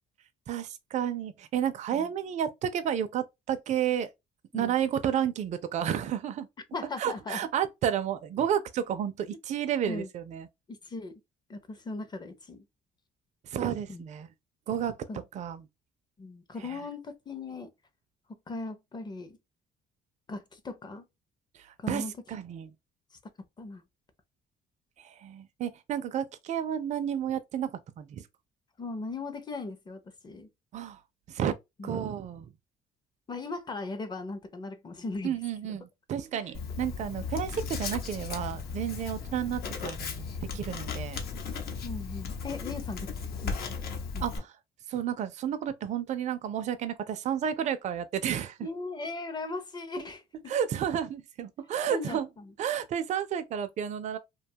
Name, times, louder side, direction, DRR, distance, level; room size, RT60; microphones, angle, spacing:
voice 1, 0.5-4.1 4.5-6.5 7.0-10.5 13.5-14.3 14.7-14.9 15.3-15.7 16.6-16.8 21.6-22.7 25.0-28.2 30.7-31.0 31.3-31.5 31.8-32.5 35.2-41.2 44.2-44.5 44.9-48.7 50.5-52.3 52.6-54.2, right 9 dB, 45° right, 0.4 m, -31 dB
voice 2, 6.7-7.4 9.8-10.1 10.7-11.2 11.5-12.6 13.9-14.0 15.1-15.2 16.2-17.7 18.5-19.4 20.3-21.0 21.8-22.1 23.6-23.8 28.8-30.5 31.8-31.9 33.3-35.4 35.6-35.8 36.3-36.4 41.8-43.1 43.4-43.8 44.1-44.3 48.6-50.6 51.9-52.5, left 3 dB, 25° left, 0.6 m, -38 dB
Writing, 36.5-44.4, left 5 dB, 65° left, 0.8 m, -36 dB
2.7 x 2.2 x 2.7 m
cardioid pair, 110°, 17 cm